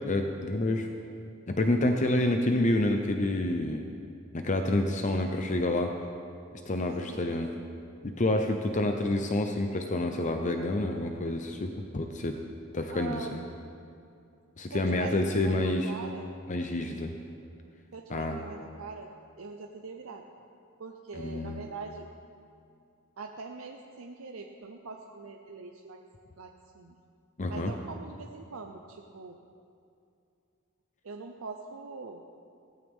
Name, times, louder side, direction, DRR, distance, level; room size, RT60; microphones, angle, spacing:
voice 1, 0.0-0.9 1.5-3.9 4.3-5.9 6.7-7.5 8.0-12.4 12.7-13.4 14.6-15.9 16.5-17.1 18.1-18.4 21.1-21.6 27.4-27.7, left 1 dB, 35° left, 4 dB, 0.7 m, -28 dB
voice 2, 7.1-7.5 12.9-13.5 14.7-16.3 16.7-16.9 17.9-19.1 19.4-20.2 20.8-22.1 23.2-26.0 26.4-27.0 27.5-29.4 31.0-32.2, right 4 dB, 80° right, 3 dB, 0.7 m, -43 dB
16.5 x 14.5 x 3.7 m, 2.5 s
head